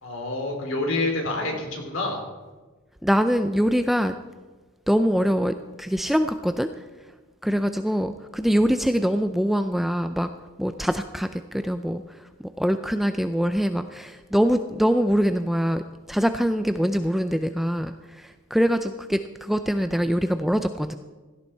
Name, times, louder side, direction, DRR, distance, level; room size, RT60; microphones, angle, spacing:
voice 1, 0.0-2.2, left 2 dB, 60° left, 2 dB, 3.5 m, -27 dB
voice 2, 3.0-4.1 4.9-6.7 7.4-10.3 10.6-15.8 16.1-20.9, equal, ahead, 8 dB, 0.4 m, -24 dB
17.0 x 13.0 x 4.5 m, 1.3 s
head